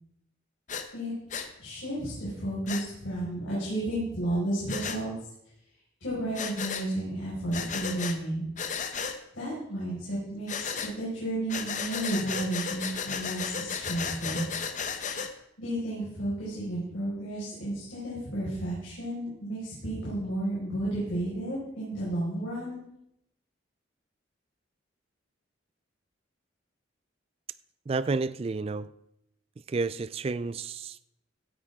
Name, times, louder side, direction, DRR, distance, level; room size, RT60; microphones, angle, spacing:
Breathing, 0.7-0.9 1.3-1.5 2.7-2.8 4.7-5.0 6.3-6.9 7.5-8.2 8.6-9.2 10.5-10.9 11.5-15.3, left 6 dB, 40° left, 0.8 m, -34 dB
voice 1, 1.6-5.1 6.0-8.5 9.3-14.5 15.6-22.8, right 1 dB, 75° left, 5.1 m, -32 dB
voice 2, 27.9-28.9 29.7-31.2, right 3 dB, 30° right, 0.3 m, -31 dB
16.0 x 10.0 x 3.6 m
head